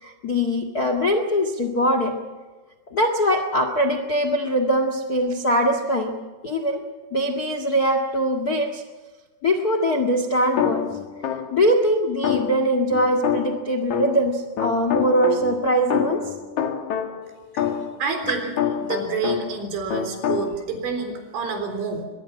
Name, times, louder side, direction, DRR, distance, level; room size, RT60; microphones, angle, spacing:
voice 1, 0.0-2.1 2.9-6.1 6.4-6.8 7.1-8.8 9.4-10.8 11.3-16.2 17.5-17.7 18.3-18.4, equal, 90° left, 6 dB, 0.8 m, -22 dB
sound 1, 10.6-11.7 12.2-19.6 19.9-20.5, left 9 dB, 55° left, 2.3 m, -27 dB
voice 2, 18.0-18.5 18.8-22.1, right 4 dB, 90° right, 6 dB, 6.2 m, -28 dB
23.5 x 22.5 x 5.9 m, 1.3 s
omnidirectional pair, 5.3 m